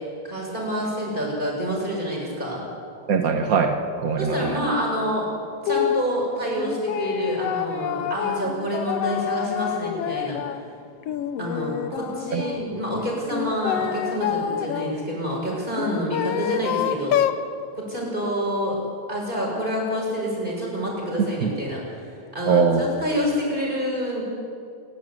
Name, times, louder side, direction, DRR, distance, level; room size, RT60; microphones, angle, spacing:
voice 1, 0.2-2.6 4.2-5.3 5.6-10.4 11.4-17.2 17.7-18.8 19.1-21.8 22.3-24.2, equal, 15° right, -3 dB, 6.6 m, -27 dB
voice 2, 3.1-4.5 12.3-12.4 21.4-21.5 22.5-22.8, right 5 dB, 70° right, 5 dB, 0.8 m, -21 dB
sound 1, 5.7-6.1 6.6-10.6 11.0-12.6 13.3-14.9 15.7-17.4, left 10 dB, 70° left, 1.7 m, -27 dB
28.5 x 11.5 x 9.7 m, 2.4 s
omnidirectional pair, 3.4 m